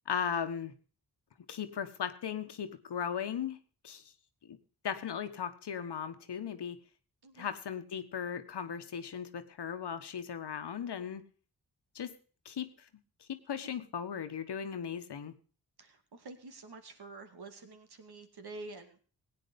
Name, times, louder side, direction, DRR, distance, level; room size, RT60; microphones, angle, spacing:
voice 1, 0.1-0.7 1.5-3.6 3.8-4.0 4.5-4.6 4.8-6.8 7.4-11.2 11.9-12.1 12.4-12.7 13.3-15.3, left 8 dB, 75° left, 10 dB, 1.5 m, -37 dB
voice 2, 15.8-19.1, right 3 dB, 70° right, 6 dB, 2.5 m, -48 dB
16.5 x 9.2 x 5.4 m, 0.40 s
cardioid pair, 55°, 41 cm